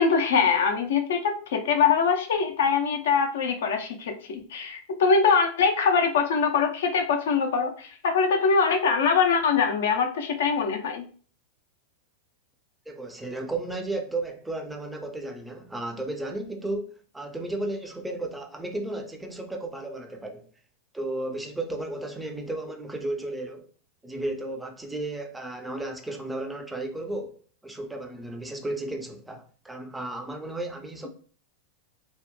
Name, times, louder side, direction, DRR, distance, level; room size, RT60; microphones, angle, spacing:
voice 1, 0.0-11.0, left 5 dB, 75° left, 0.4 m, -23 dB
voice 2, 12.9-20.5 20.9-23.7 24.0-27.4 27.6-31.1, right 2 dB, 5° right, 0.4 m, -34 dB
2.8 x 2.0 x 2.2 m
hypercardioid pair, 100°, 0 cm